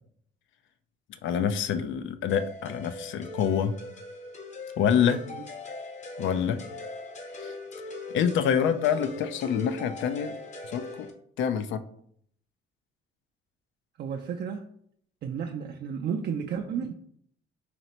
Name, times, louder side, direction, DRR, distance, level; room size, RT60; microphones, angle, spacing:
voice 1, 1.2-3.7 4.8-5.2 6.2-6.6 7.4-7.5 8.1-10.3 10.7-11.1 11.4-11.8, left 8 dB, 75° left, 11 dB, 0.4 m, -26 dB
sound 1, 2.3-11.1, left 2 dB, 35° left, 0.7 m, -40 dB
voice 2, 14.0-14.7 15.2-16.9, right 7 dB, 55° right, 2 dB, 0.4 m, -32 dB
4.1 x 3.2 x 2.9 m, 0.64 s
cardioid pair, 90°, 20 cm